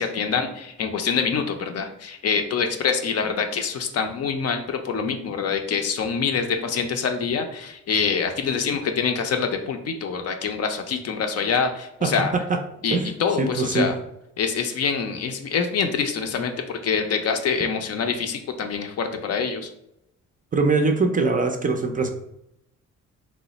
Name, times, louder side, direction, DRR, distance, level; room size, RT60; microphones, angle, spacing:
voice 1, 0.0-12.3 12.8-13.9 14.4-19.7, left 6 dB, 55° left, 6 dB, 0.5 m, -25 dB
voice 2, 12.0-12.6 12.9-13.1 13.4-13.9 20.5-22.1, right 3 dB, 30° right, 5 dB, 0.4 m, -22 dB
3.0 x 2.0 x 3.9 m, 0.80 s
cardioid pair, 90°, 30 cm